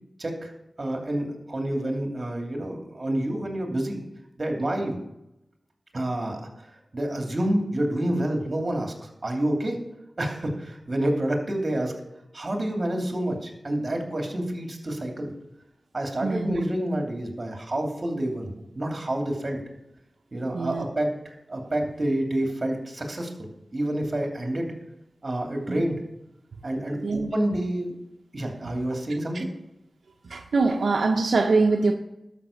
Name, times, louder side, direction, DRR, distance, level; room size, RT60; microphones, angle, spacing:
voice 1, 0.2-0.5 0.8-4.0 4.4-5.0 5.9-9.8 10.2-11.9 12.3-15.3 15.9-19.6 20.3-21.1 21.5-24.7 25.2-26.0 26.6-27.9 28.3-29.5, right 1 dB, 40° right, 2 dB, 2.7 m, -28 dB
voice 2, 16.2-16.6 20.5-20.8 25.7-25.8 27.0-27.3 28.7-28.8 29.3-29.4 30.2-31.9, right 3 dB, 85° right, 3 dB, 0.9 m, -24 dB
12.5 x 6.1 x 7.1 m, 0.87 s
wide cardioid pair, 75°, 0 cm